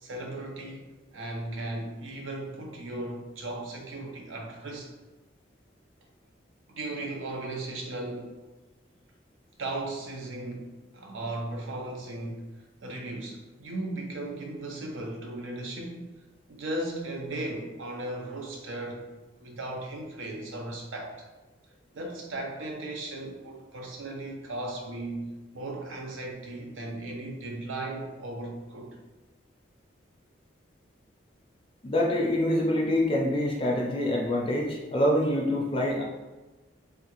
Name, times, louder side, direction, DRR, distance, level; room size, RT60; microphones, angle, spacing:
voice 1, 0.0-0.8 1.1-4.9 6.7-8.3 9.6-12.5 12.8-16.0 16.5-19.0 19.4-21.1 21.9-29.0, right 2 dB, 85° right, 0 dB, 0.6 m, -36 dB
voice 2, 31.8-36.0, left 1 dB, 30° left, -1 dB, 0.4 m, -25 dB
3.3 x 2.3 x 2.9 m, 1.2 s
head